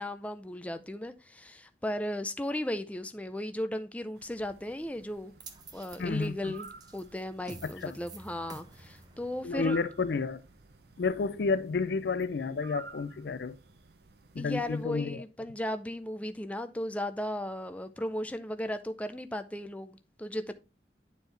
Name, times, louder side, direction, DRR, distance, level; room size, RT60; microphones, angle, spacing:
voice 1, 0.0-5.3 5.7-6.7 6.9-9.8 14.4-20.5, left 1 dB, 10° left, 0.4 m, -36 dB
sound 1, 4.2-14.9, right 4 dB, 60° right, 0.7 m, -52 dB
sound 2, 5.4-11.7, right 2 dB, 25° right, 0.9 m, -51 dB
voice 2, 6.0-6.6 7.6-7.9 9.4-10.4 11.0-13.6 14.3-15.2, left 4 dB, 65° left, 0.4 m, -31 dB
9.7 x 4.5 x 3.2 m
head